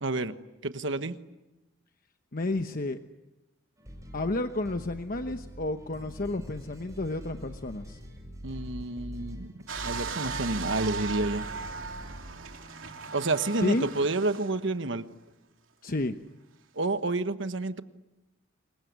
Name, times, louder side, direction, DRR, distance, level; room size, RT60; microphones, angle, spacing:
voice 1, 0.0-0.3 0.6-1.2 8.4-9.5 9.8-11.4 13.1-15.0 16.7-17.8, right 2 dB, 65° right, 10 dB, 1.3 m, -29 dB
voice 2, 2.3-3.0 4.1-8.0 13.6-13.9 15.8-16.2, left 2 dB, 45° left, 7 dB, 1.0 m, -31 dB
sound 1, 3.8-12.3, equal, 15° right, 7.5 m, -43 dB
sound 2, 9.7-14.7 15.3-15.4, right 5 dB, 85° right, 3.0 m, -38 dB
27.5 x 22.5 x 9.6 m, 1.0 s
head